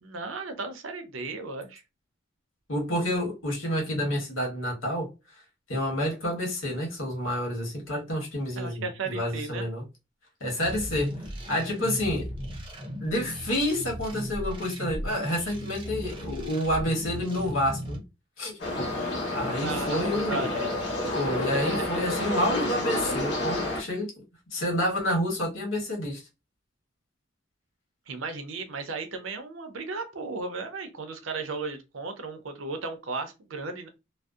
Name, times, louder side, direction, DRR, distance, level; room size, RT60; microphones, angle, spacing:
voice 1, 0.0-1.8 8.6-9.6 19.6-20.8 21.5-21.9 24.5-24.7 28.1-33.9, right 3 dB, 80° right, 0.6 m, -35 dB
voice 2, 2.7-5.1 5.7-9.8 10.4-11.1 11.5-12.3 13.0-18.0 18.4-18.6 19.3-20.5 21.2-24.1 24.5-26.2, left 1 dB, 85° left, 1.2 m, -29 dB
sound 1, 10.6-18.0, equal, 25° right, 0.5 m, -37 dB
sound 2, 18.6-23.8, left 1 dB, 60° left, 0.9 m, -29 dB
2.6 x 2.0 x 2.3 m
head